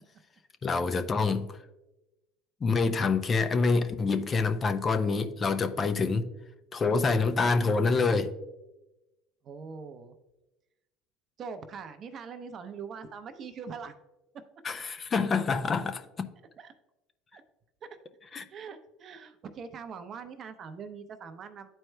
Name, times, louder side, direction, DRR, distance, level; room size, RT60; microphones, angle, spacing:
voice 1, 0.6-1.5 2.6-6.3 6.7-8.3 14.6-16.0 18.3-18.4, left 4 dB, 35° left, 0.6 m, -26 dB
voice 2, 9.4-10.2 11.4-13.9 16.6-16.7 17.3-17.4 18.5-21.7, right 5 dB, 45° right, 0.6 m, -42 dB
11.5 x 4.5 x 2.2 m
hypercardioid pair, 80°, 0 cm